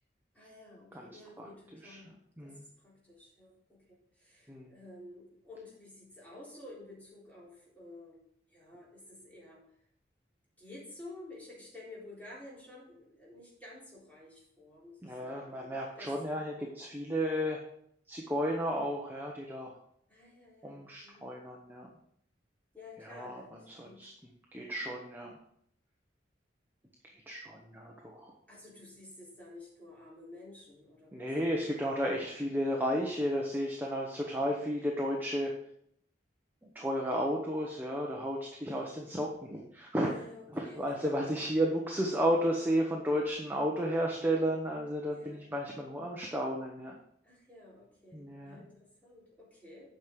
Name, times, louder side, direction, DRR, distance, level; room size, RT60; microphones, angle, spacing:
voice 1, 0.3-2.1 2.4-8.2 8.5-9.6 10.6-15.7 16.0-16.4 20.1-21.3 22.7-24.0 24.5-24.7 28.5-31.3 32.1-32.2 34.4-34.6 40.0-41.3 45.1-45.5 47.2-49.9, left 2 dB, 10° left, -6 dB, 3.9 m, -52 dB
voice 2, 15.0-17.6 18.1-19.8 20.6-21.9 23.0-25.3 27.1-28.3 31.1-35.5 36.6-40.2 40.5-46.9 48.1-48.6, equal, 10° right, -1 dB, 1.0 m, -33 dB
9.0 x 6.3 x 5.3 m, 0.69 s
head